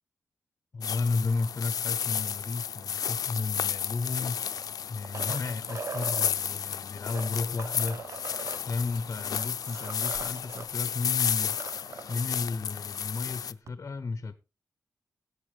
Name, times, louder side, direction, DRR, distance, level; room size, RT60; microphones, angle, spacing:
voice 1, 0.7-4.5 4.9-8.0 8.6-14.3, left 4 dB, 40° left, 0.7 m, -33 dB
sound 1, 0.8-13.5, left 8 dB, 80° left, 0.5 m, -32 dB
sound 2, 4.4-6.3 7.0-10.7 11.0-11.1 11.4-12.2 13.7-13.8, right 5 dB, 50° right, 0.5 m, -41 dB
16.5 x 8.1 x 3.2 m
wide cardioid pair, 145°, 6 cm